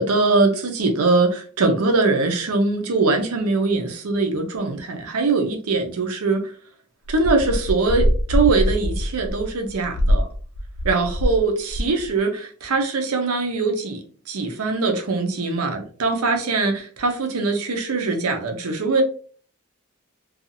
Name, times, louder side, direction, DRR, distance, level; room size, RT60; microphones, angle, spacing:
voice 1, 0.0-6.5 7.1-10.3 10.8-19.0, right 3 dB, 80° right, 0.6 m, -22 dB
sound 1, 7.1-11.4 11.7-12.1, equal, 80° left, 0.4 m, -23 dB
2.7 x 2.4 x 2.6 m
head